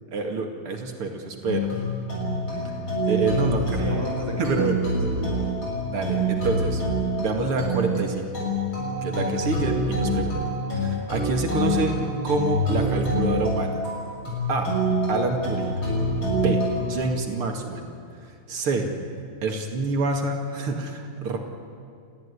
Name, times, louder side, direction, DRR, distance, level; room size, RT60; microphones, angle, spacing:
voice 1, 0.1-1.7 3.1-4.0 4.4-4.7 5.9-6.8 7.2-8.3 9.0-10.4 10.7-12.0 12.2-13.8 14.5-14.7 15.1-15.7 16.3-17.9 18.5-18.9 19.4-21.4, right 3 dB, 90° right, 3 dB, 3.1 m, -27 dB
sound 1, 1.5-17.0, equal, 65° left, 7.2 m, -26 dB
voice 2, 3.1-5.5, right 1 dB, 5° right, -1 dB, 5.1 m, -33 dB
30.0 x 15.0 x 9.8 m, 2.3 s
omnidirectional pair, 2.4 m